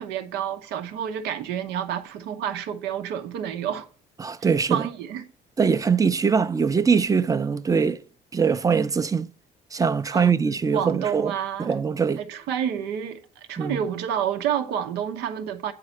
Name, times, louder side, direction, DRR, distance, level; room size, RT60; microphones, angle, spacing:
voice 1, 0.0-3.9 4.7-5.3 10.1-10.5 10.7-11.7 12.2-15.7, right 9 dB, 90° right, 0.9 m, -29 dB
voice 2, 4.2-4.9 5.6-8.0 8.3-9.3 9.7-11.3 11.6-12.2 13.6-13.8, right 6 dB, 20° right, 0.5 m, -22 dB
8.6 x 4.7 x 6.4 m
cardioid pair, 110°, 17 cm